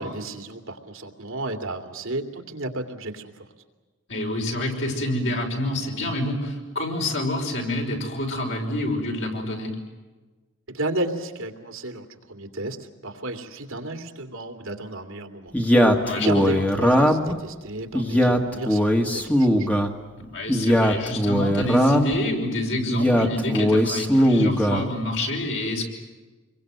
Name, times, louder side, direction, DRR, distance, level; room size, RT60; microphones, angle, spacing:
voice 1, 0.0-3.5 10.7-12.8 13.0-15.8 16.1-19.7, right 2 dB, 80° right, 4 dB, 2.7 m, -33 dB
voice 2, 4.1-9.7 16.0-16.3 20.3-25.9, left 1 dB, 60° left, 2 dB, 5.7 m, -27 dB
Male speech man speaking, 15.5-17.4 17.9-19.9 20.5-22.2 22.9-24.9, equal, 5° left, 1.7 m, -20 dB
27.5 x 23.0 x 7.9 m, 1.3 s
head